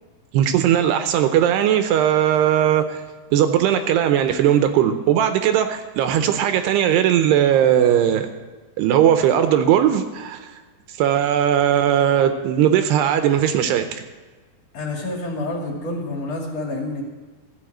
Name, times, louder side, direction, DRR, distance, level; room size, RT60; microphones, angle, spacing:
voice 1, 0.3-3.0 3.3-8.3 8.8-10.5 11.0-14.0, right 10 dB, 80° right, 8 dB, 2.6 m, -18 dB
voice 2, 14.7-17.0, left 2 dB, 45° left, 0 dB, 2.9 m, -28 dB
14.5 x 7.2 x 8.8 m, 1.3 s
omnidirectional pair, 5.2 m